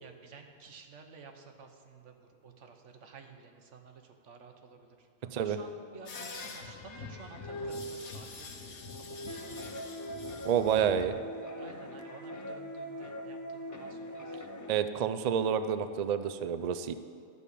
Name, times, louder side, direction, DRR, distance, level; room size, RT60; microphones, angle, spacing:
voice 1, 0.0-2.1 2.4-5.1 5.4-9.7 11.6-14.3, right 4 dB, 90° right, 4 dB, 1.4 m, -52 dB
voice 2, 5.2-5.6 10.4-11.2 14.7-16.9, right 8 dB, 55° right, 10 dB, 0.4 m, -29 dB
sound 1, 6.1-11.0, left 2 dB, 75° left, 1.3 m, -42 dB
sound 2, 9.3-14.7, equal, 25° left, 0.4 m, -42 dB
12.5 x 5.5 x 8.3 m, 2.2 s
omnidirectional pair, 1.2 m